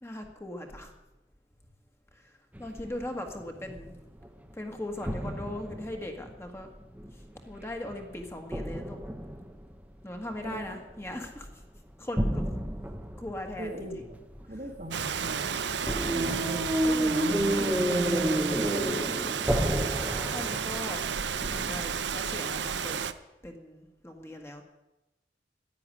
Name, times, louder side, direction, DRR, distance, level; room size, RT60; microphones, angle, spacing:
voice 1, 0.0-0.9 2.1-3.9 4.5-6.7 7.1-9.0 10.0-11.6 12.0-12.5 13.2-14.1 14.5-14.6 15.9-16.4 18.7-19.3 20.3-21.1 21.5-23.0 23.4-24.6, left 1 dB, 15° left, 3 dB, 1.7 m, -40 dB
sound 1, 2.5-3.0 3.4-4.5 5.0-7.3 7.9-9.9 10.3-11.0 11.4-11.8 12.2-22.0, equal, 10° right, 1.0 m, -31 dB
voice 2, 10.4-10.8 13.6-14.0 14.5-15.6 16.1-18.3 18.6-19.0, right 2 dB, 40° right, 4 dB, 1.7 m, -38 dB
Rain, 14.9-23.1, right 7 dB, 75° right, 0.7 m, -32 dB
11.0 x 10.5 x 9.9 m, 1.0 s
head